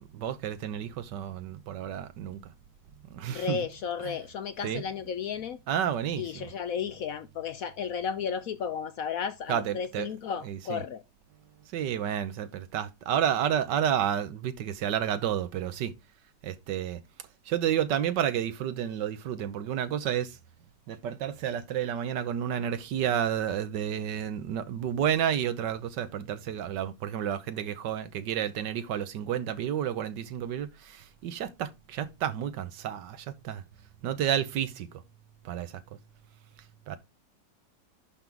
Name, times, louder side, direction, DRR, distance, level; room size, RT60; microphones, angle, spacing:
voice 1, 0.1-2.5 3.0-3.6 4.0-4.2 4.6-4.8 5.7-6.5 9.5-10.1 10.4-10.8 11.7-15.9 16.4-17.0 17.5-20.4 20.9-33.6 34.0-35.0 35.4-35.8 36.9-37.0, right 9 dB, 75° right, 1.5 m, -31 dB
voice 2, 3.3-5.6 6.2-11.0, left 7 dB, 65° left, 0.9 m, -33 dB
11.0 x 3.9 x 4.6 m
omnidirectional pair, 1.9 m